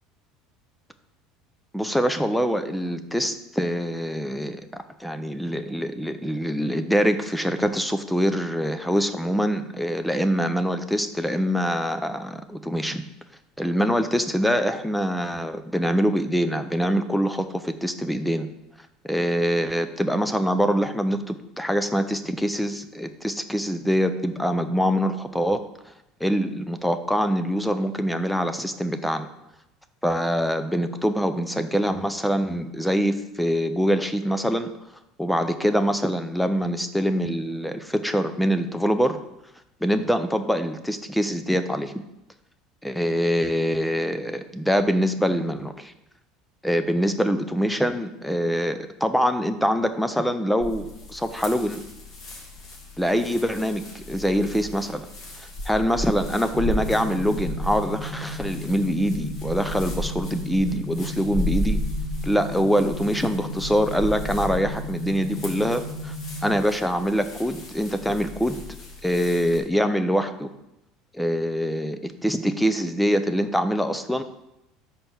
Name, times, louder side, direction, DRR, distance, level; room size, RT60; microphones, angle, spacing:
voice 1, 1.7-13.0 13.6-18.5 19.0-25.6 26.2-29.3 30.0-34.7 35.2-39.2 39.8-41.9 42.8-45.9 46.6-51.8 53.0-55.1 55.7-61.8 62.2-66.2 66.4-68.6 69.0-70.5 71.1-74.2, equal, 5° left, 9 dB, 0.4 m, -24 dB
sound 1, 50.6-69.6, left 1 dB, 45° left, 1.7 m, -35 dB
sound 2, 56.5-66.5, equal, 65° right, 0.7 m, -35 dB
5.2 x 4.4 x 5.7 m, 0.87 s
supercardioid pair, 115°, 0 cm